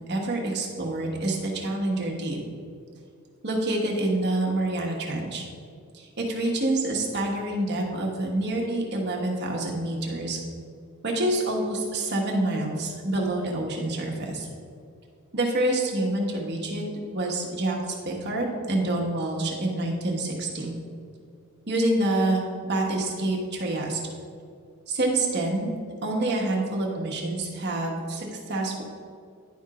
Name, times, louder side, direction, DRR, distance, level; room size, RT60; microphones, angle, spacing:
voice 1, 0.0-2.4 3.4-5.4 5.9-10.4 11.0-14.5 15.3-16.8 17.1-20.8 21.7-24.0 24.9-25.7 26.0-28.8, right 2 dB, 50° right, -1 dB, 1.3 m, -27 dB
10.5 x 3.6 x 4.9 m, 2.3 s
head